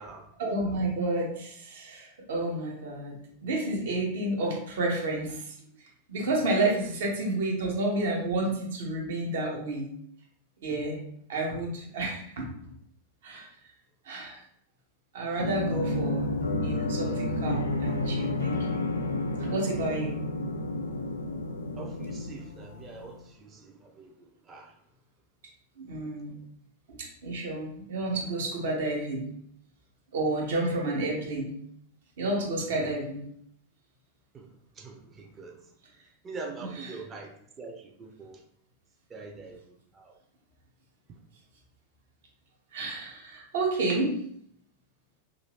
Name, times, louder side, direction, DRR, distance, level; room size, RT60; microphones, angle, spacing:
voice 1, 0.4-3.2 3.4-5.5 6.1-9.9 10.6-11.0 11.3-12.5 13.2-13.5 14.0-14.4 15.1-16.3 16.6-18.8 19.4-20.2 25.8-26.3 27.0-29.3 30.1-31.5 32.2-33.2 36.6-36.9 42.7-44.1, right 2 dB, 60° right, -1 dB, 1.0 m, -30 dB
sound 1, 15.3-22.9, left 2 dB, 70° left, 0.5 m, -30 dB
voice 2, 21.7-24.7 32.7-32.9 34.3-34.5 34.8-35.6 36.2-38.4 39.1-40.1, right 3 dB, 25° right, 2 dB, 0.6 m, -44 dB
2.6 x 2.6 x 3.3 m, 0.69 s
figure-of-eight pair, 90°, 0 cm